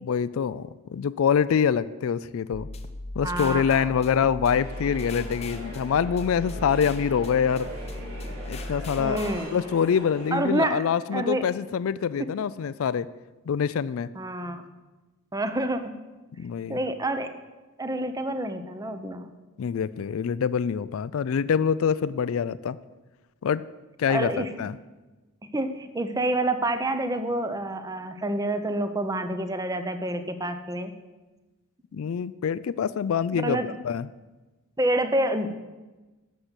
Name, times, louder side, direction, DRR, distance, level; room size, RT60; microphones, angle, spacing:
voice 1, 0.1-2.7 3.2-7.7 8.5-9.2 9.5-13.1 13.5-14.1 16.4-16.8 19.6-22.8 23.4-23.6 24.0-24.8 31.9-34.1, left 7 dB, 70° left, 16 dB, 0.4 m, -25 dB
sound 1, 2.5-9.4, left 1 dB, 30° left, 0.7 m, -37 dB
voice 2, 3.2-3.9 9.0-9.6 10.3-10.8 11.1-11.4 14.1-14.7 15.3-15.9 16.7-17.3 17.8-19.3 24.1-24.7 25.5-30.9 33.3-33.7 34.8-35.5, right 1 dB, 15° right, 9 dB, 0.7 m, -28 dB
sound 2, 4.6-10.4, right 1 dB, 75° right, 4.3 m, -41 dB
11.5 x 6.8 x 8.1 m, 1.2 s
head